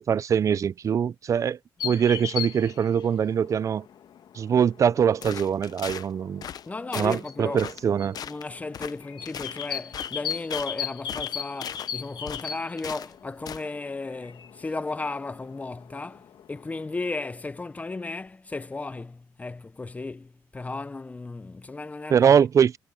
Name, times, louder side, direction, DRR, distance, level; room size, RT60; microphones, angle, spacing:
voice 1, 0.0-1.6 1.8-3.8 4.3-6.5 7.0-8.2 22.1-22.8, right 7 dB, 40° right, 0.4 m, -23 dB
sound 1, 1.8-17.2, left 9 dB, 70° left, 1.8 m, -39 dB
sound 2, 5.2-6.1 6.4-6.7 6.9-7.2 7.6-7.9 8.1-8.4 8.7-8.9 9.3-10.7 11.1-11.9 12.3-13.1 13.5-13.7, left 8 dB, 55° left, 0.8 m, -38 dB
voice 2, 6.7-7.7 8.2-22.3, left 3 dB, 20° left, 0.6 m, -35 dB
cardioid pair, 120°, 8 cm